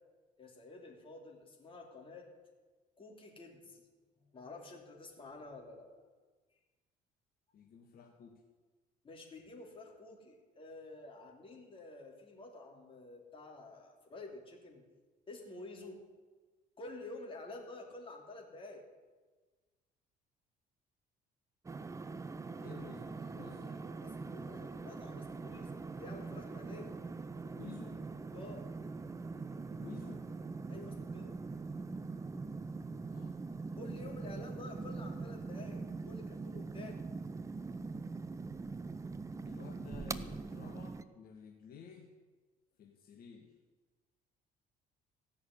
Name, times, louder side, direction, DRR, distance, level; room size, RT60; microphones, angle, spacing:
voice 1, 0.4-2.3 3.0-3.9 4.2-5.9 9.0-14.8 15.3-16.0 16.8-18.8 24.0-26.9 28.3-28.7 30.7-31.3 33.8-37.0, left 2 dB, 30° left, 1 dB, 3.2 m, -50 dB
voice 2, 7.5-8.4 22.3-23.9 27.5-28.1 29.8-30.3 33.1-33.4 39.4-42.1 42.8-43.5, left 7 dB, 60° left, 2 dB, 1.6 m, -53 dB
sound 1, 21.6-41.0, right 4 dB, 20° right, 0.6 m, -43 dB
16.0 x 6.4 x 9.8 m, 1.3 s
cardioid pair, 110°, 17 cm